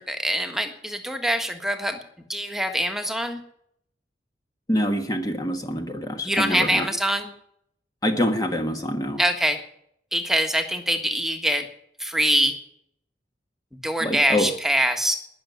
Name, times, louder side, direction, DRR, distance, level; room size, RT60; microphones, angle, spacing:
voice 1, 0.0-2.0 2.3-3.4 6.2-7.3 9.2-9.6 10.1-11.7 12.0-12.6 13.7-15.1, equal, ahead, 5 dB, 1.6 m, -24 dB
voice 2, 4.7-6.9 8.0-9.2 14.0-14.5, left 1 dB, 20° left, 5 dB, 1.4 m, -25 dB
20.0 x 7.0 x 9.5 m, 0.70 s
head